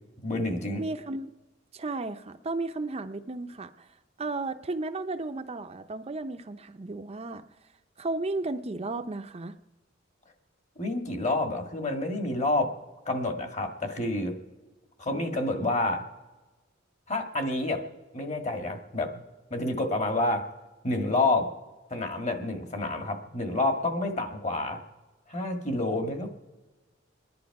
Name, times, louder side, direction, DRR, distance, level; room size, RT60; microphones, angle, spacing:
voice 1, 0.2-0.8 10.7-12.7 13.0-14.3 15.0-16.0 17.1-17.8 18.1-19.2 19.5-20.4 20.8-21.5 21.9-24.8 25.3-26.3, left 2 dB, 35° left, 4 dB, 1.8 m, -28 dB
voice 2, 0.8-1.3 1.7-3.9 4.2-7.4 8.0-9.6, right 2 dB, 30° right, 8 dB, 0.5 m, -34 dB
27.5 x 10.5 x 4.8 m, 1.2 s
head